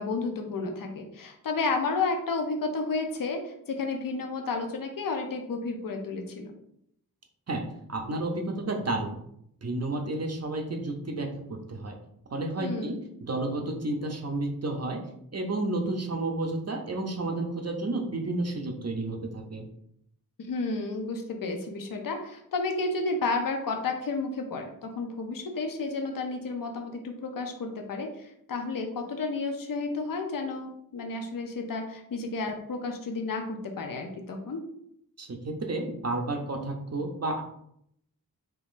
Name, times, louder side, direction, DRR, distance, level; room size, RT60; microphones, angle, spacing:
voice 1, 0.0-6.5 12.6-12.9 20.5-34.6, left 3 dB, 70° left, 3 dB, 0.6 m, -32 dB
voice 2, 7.5-9.2 9.6-12.0 12.3-13.0 13.3-15.0 15.3-19.6 35.2-37.4, right 2 dB, 45° right, 3 dB, 0.6 m, -31 dB
3.6 x 2.9 x 2.5 m, 0.72 s
wide cardioid pair, 85°, 35 cm